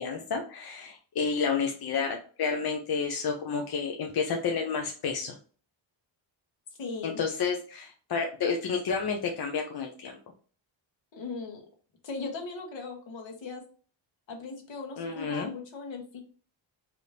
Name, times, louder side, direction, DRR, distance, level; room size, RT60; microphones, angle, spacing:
voice 1, 0.0-5.4 7.0-10.2 15.0-15.5, left 5 dB, 50° left, 2 dB, 0.6 m, -30 dB
voice 2, 6.8-7.2 11.1-11.6 12.0-13.6 14.3-16.2, left 4 dB, 65° left, 1 dB, 1.4 m, -38 dB
4.7 x 2.6 x 3.3 m, 0.40 s
wide cardioid pair, 160°, 48 cm